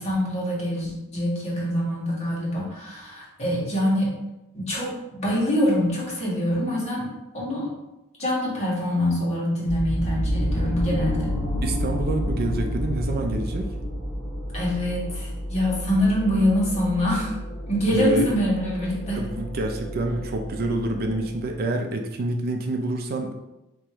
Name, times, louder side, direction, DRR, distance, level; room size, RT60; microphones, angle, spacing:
voice 1, 0.0-4.1 4.5-7.1 7.3-7.7 8.2-11.3 14.5-17.3 17.7-19.2, equal, 30° left, -5 dB, 1.6 m, -25 dB
sound 1, 9.7-21.6, equal, 45° left, 1.3 m, -30 dB
voice 2, 11.6-13.7 17.9-18.3 19.1-23.3, right 2 dB, 45° right, 4 dB, 0.4 m, -27 dB
3.5 x 2.9 x 4.8 m, 0.97 s
head